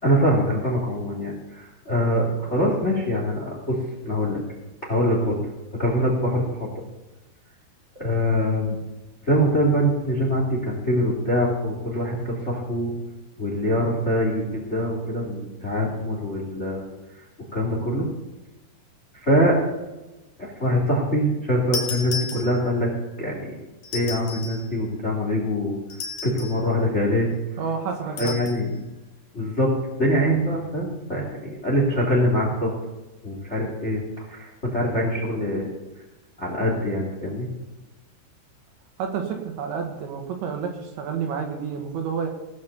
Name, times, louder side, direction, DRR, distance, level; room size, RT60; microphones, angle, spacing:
voice 1, 0.0-3.8 4.0-4.4 4.8-5.4 5.7-6.7 7.9-8.8 9.2-12.9 13.4-16.8 17.5-18.1 19.2-19.6 20.4-22.9 23.2-23.6 23.9-25.8 26.2-27.3 28.2-28.7 29.3-29.7 30.0-32.7 33.2-34.0 34.3-35.7 36.4-37.5, equal, 25° left, 0 dB, 1.4 m, -23 dB
sound 1, 21.7-22.9 23.8-24.7 25.9-26.7 28.2-28.6, left 4 dB, 55° left, 2.5 m, -33 dB
voice 2, 27.6-28.3 39.0-42.3, right 6 dB, 70° right, 3 dB, 3.6 m, -29 dB
18.0 x 6.4 x 6.9 m, 1.1 s
omnidirectional pair, 5.8 m